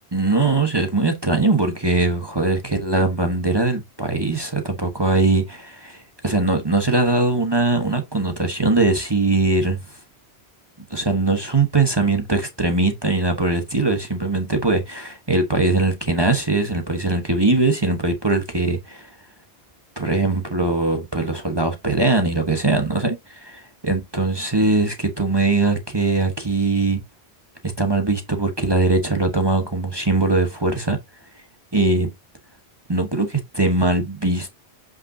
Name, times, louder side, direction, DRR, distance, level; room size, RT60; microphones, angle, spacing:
voice 1, 0.1-10.0 10.9-19.1 20.0-27.0 27.8-31.0 31.7-32.1 32.9-34.6, right 2 dB, 25° right, 1.2 m, -21 dB
8.3 x 5.4 x 2.7 m
omnidirectional pair, 1.1 m